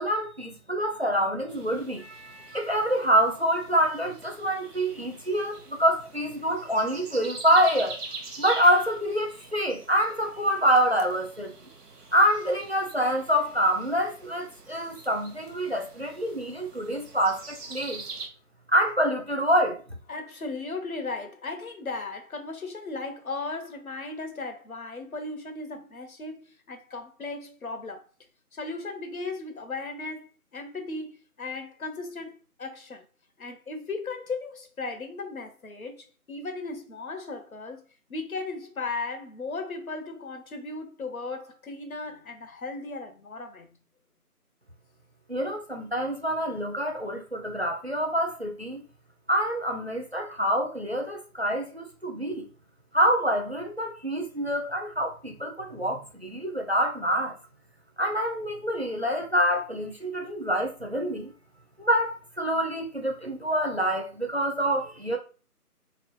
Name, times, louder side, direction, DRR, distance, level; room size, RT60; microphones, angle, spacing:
voice 1, 0.0-8.0 8.4-11.5 12.1-18.0 18.7-20.0 45.3-48.8 49.3-52.5 52.9-57.4 58.0-61.3 61.8-65.2, equal, 45° right, 0.5 m, -26 dB
sound 1, 1.5-18.3, right 3 dB, 85° right, 0.9 m, -44 dB
voice 2, 20.1-28.0 28.5-33.0 33.4-37.8 38.1-43.8, left 3 dB, 65° left, 0.8 m, -36 dB
2.9 x 2.6 x 3.1 m
figure-of-eight pair, 165°, 46 cm